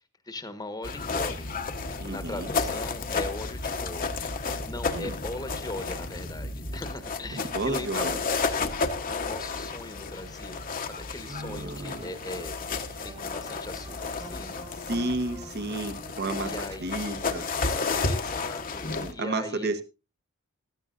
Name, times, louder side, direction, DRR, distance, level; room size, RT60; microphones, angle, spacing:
voice 1, 0.0-1.5 2.1-4.2 4.6-8.7 9.1-10.6 10.9-12.5 12.9-14.6 16.4-17.1 18.0-19.8, left 2 dB, 15° left, 1.2 m, -40 dB
sound 1, 0.8-19.1, left 4 dB, 40° left, 1.1 m, -32 dB
voice 2, 2.0-2.5 4.9-5.2 7.3-8.2 11.2-12.1 14.9-17.5 18.9-19.8, right 2 dB, 45° right, 1.2 m, -32 dB
sound 2, 11.6-18.4, right 1 dB, 30° right, 1.7 m, -49 dB
16.0 x 13.5 x 2.5 m
head